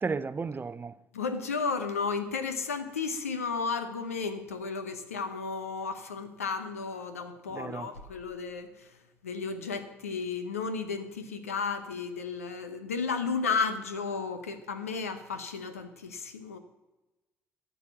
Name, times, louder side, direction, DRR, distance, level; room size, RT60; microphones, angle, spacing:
voice 1, 0.0-1.0 7.5-7.9, right 4 dB, 25° right, 0.5 m, -33 dB
voice 2, 1.1-9.0 9.2-16.6, left 5 dB, 85° left, 0.8 m, -33 dB
12.5 x 7.1 x 7.0 m
figure-of-eight pair, 50°, 8 cm